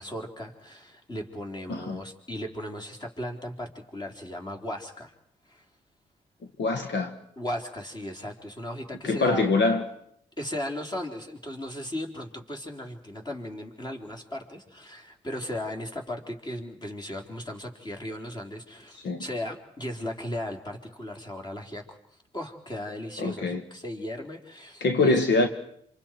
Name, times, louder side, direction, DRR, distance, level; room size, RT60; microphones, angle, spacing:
voice 1, 0.0-5.1 5.5-5.6 7.4-9.5 10.4-22.0 22.3-25.2, left 1 dB, 20° left, 3.9 m, -36 dB
voice 2, 1.7-2.0 6.6-7.1 9.0-9.8 19.0-19.2 23.2-23.6 24.8-25.5, left 3 dB, 65° left, 1.8 m, -24 dB
27.5 x 27.0 x 4.6 m
cardioid pair, 80°, 20 cm